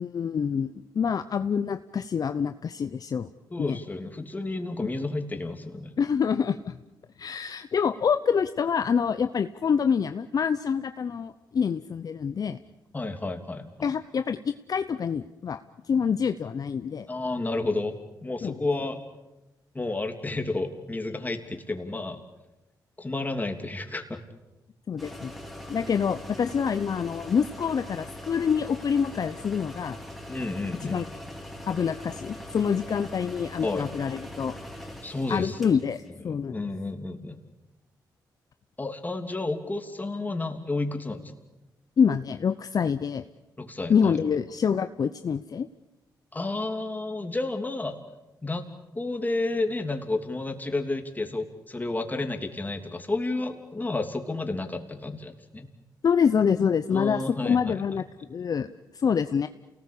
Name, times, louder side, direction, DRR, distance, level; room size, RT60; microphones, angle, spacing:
voice 1, 0.0-3.3 3.6-3.8 6.0-6.8 7.2-12.6 13.8-15.6 15.9-17.1 18.4-18.5 24.9-25.3 25.7-30.0 30.8-31.0 31.7-34.5 35.3-36.6 42.0-43.2 43.9-45.7 56.0-58.0 58.3-58.7 58.9-59.5, left 6 dB, 55° left, 10 dB, 0.8 m, -26 dB
voice 2, 3.5-5.9 12.9-13.9 17.1-17.9 18.2-19.0 19.7-22.2 23.0-24.2 30.3-31.0 33.6-33.9 35.0-35.6 36.3-37.4 38.8-41.3 43.6-44.2 46.3-48.0 48.4-48.7 48.9-55.7 56.9-57.8, left 2 dB, 20° left, 5 dB, 3.1 m, -31 dB
sound 1, 25.0-36.1, left 1 dB, ahead, 4.3 m, -41 dB
28.5 x 19.0 x 8.6 m, 1.0 s
cardioid pair, 75°, 8 cm